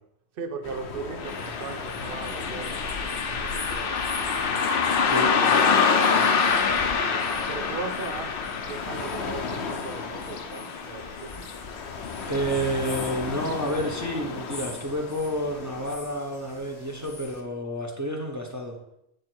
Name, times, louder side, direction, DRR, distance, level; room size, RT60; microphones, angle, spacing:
voice 1, 0.3-4.0 4.8-5.7 6.1-11.5, right 5 dB, 60° right, 0.9 m, -39 dB
sound 1, 0.6-16.0, left 5 dB, 80° left, 1.1 m, -37 dB
Car passing by, 1.2-12.0 12.3-12.4 13.4-13.5 14.0-14.1 14.6-14.7, left 5 dB, 60° left, 0.8 m, -26 dB
sound 2, 1.3-17.4, left 3 dB, 40° left, 1.0 m, -45 dB
voice 2, 5.0-5.4 12.3-18.8, equal, 15° right, 0.9 m, -30 dB
9.0 x 3.8 x 4.5 m
omnidirectional pair, 1.1 m